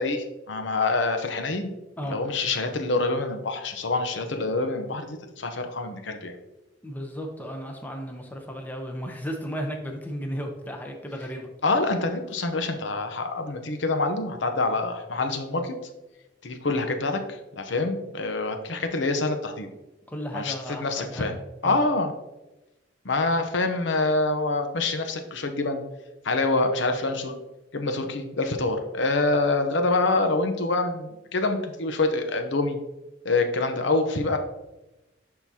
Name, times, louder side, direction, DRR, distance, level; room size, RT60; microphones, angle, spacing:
voice 1, 0.0-1.7 2.1-6.3 11.6-15.7 16.4-19.7 20.3-21.3 21.6-22.1 23.0-25.8 26.2-27.4 27.7-32.8 33.2-34.4, left 3 dB, 70° left, 6 dB, 0.8 m, -26 dB
voice 2, 6.8-11.5 20.1-21.4 21.6-21.8, equal, 10° left, 2 dB, 0.7 m, -34 dB
10.5 x 3.8 x 2.8 m, 1.0 s
head